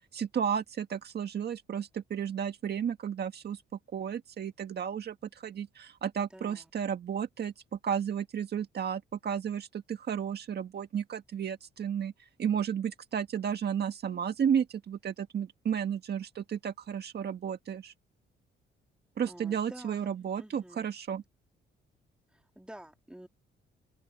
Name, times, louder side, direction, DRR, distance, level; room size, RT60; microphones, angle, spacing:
voice 1, 0.1-3.6 3.9-17.9 19.2-21.2, right 8 dB, 55° right, 1.8 m, -33 dB
voice 2, 6.3-6.7 19.3-20.9 22.3-23.3, right 1 dB, 5° right, 2.9 m, -50 dB
open air
cardioid pair, 90°, 20 cm